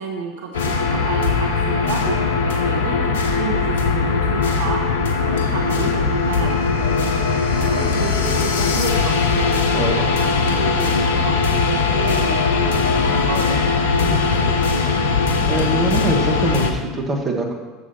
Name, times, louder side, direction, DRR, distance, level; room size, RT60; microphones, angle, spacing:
voice 1, 0.0-15.0, right 5 dB, 65° right, 2 dB, 0.8 m, -31 dB
sound 1, 0.5-16.7, left 4 dB, 75° left, 0.7 m, -19 dB
voice 2, 15.5-17.5, right 2 dB, 25° right, 0 dB, 1.5 m, -23 dB
7.1 x 6.6 x 4.2 m, 1.3 s
figure-of-eight pair, 75°, 0 cm